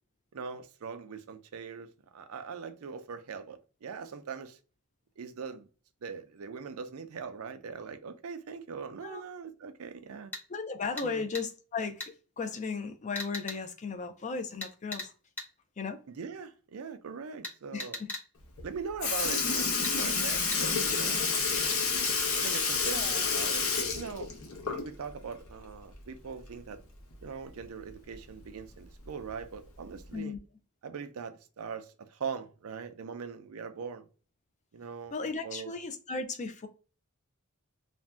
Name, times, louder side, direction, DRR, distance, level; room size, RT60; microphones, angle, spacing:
voice 1, 0.3-4.6 5.2-5.7 6.0-10.3 11.0-11.2 16.1-18.0 18.6-21.3 21.6-21.9 22.3-24.3 24.6-26.8 27.2-30.4 30.8-34.1 34.7-35.2 35.4-35.7, right 6 dB, 80° right, 0.5 m, -41 dB
sound 1, 10.3-10.5 11.0-11.1 11.3-11.5 12.0-12.1 13.2-13.6 14.6-15.1 15.4-15.5 17.4-18.3 19.8-20.0 20.5-20.6, left 1 dB, 10° left, 0.8 m, -38 dB
voice 2, 10.5-15.1 15.8-16.0 17.7-18.1 22.9-23.2 30.1-30.4 35.1-36.7, left 4 dB, 35° left, 0.4 m, -36 dB
Sink (filling or washing) / Liquid, 18.6-18.7 19.0-25.1 25.5-25.6 27.1-27.2 28.1-28.2 29.0-29.3 30.1-30.2, left 5 dB, 65° left, 0.7 m, -29 dB
2.6 x 2.2 x 3.2 m
head